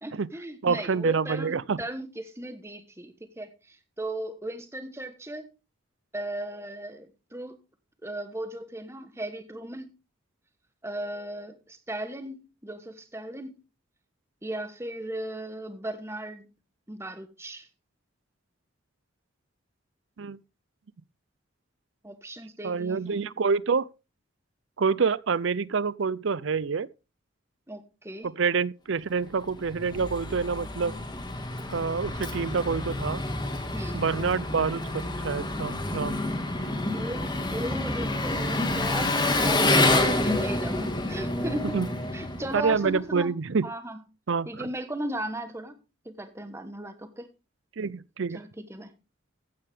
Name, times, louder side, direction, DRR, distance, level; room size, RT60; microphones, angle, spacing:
voice 1, 0.0-5.5 6.1-7.5 8.0-9.9 10.8-13.6 14.4-16.5 16.9-17.7 22.0-23.3 27.7-28.3 33.7-34.0 36.9-39.7 40.0-41.8 42.1-44.0 44.4-47.3 48.3-48.9, right 1 dB, 15° right, 1.2 m, -37 dB
voice 2, 0.6-1.8 20.2-20.4 22.6-23.9 24.8-26.9 28.2-30.9 31.7-33.2 33.9-36.2 41.7-41.9 42.5-43.7 44.3-44.7 47.8-48.4, right 5 dB, 65° right, 0.5 m, -27 dB
Engine, 29.4-43.0, left 2 dB, 20° left, 2.0 m, -28 dB
14.5 x 9.0 x 3.5 m
head